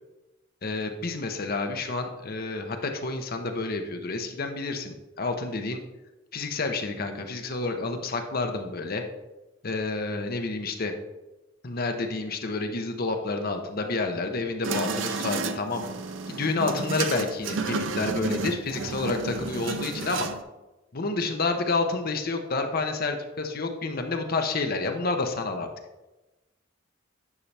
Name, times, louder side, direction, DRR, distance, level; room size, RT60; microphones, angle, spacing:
voice 1, 0.6-5.8 6.3-9.0 9.6-10.9 11.6-15.9 16.3-20.3 20.9-25.7, left 3 dB, 50° left, 5 dB, 0.8 m, -29 dB
sound 1, 14.6-20.4, right 4 dB, 75° right, 0.6 m, -31 dB
9.6 x 5.5 x 3.4 m, 1.1 s
head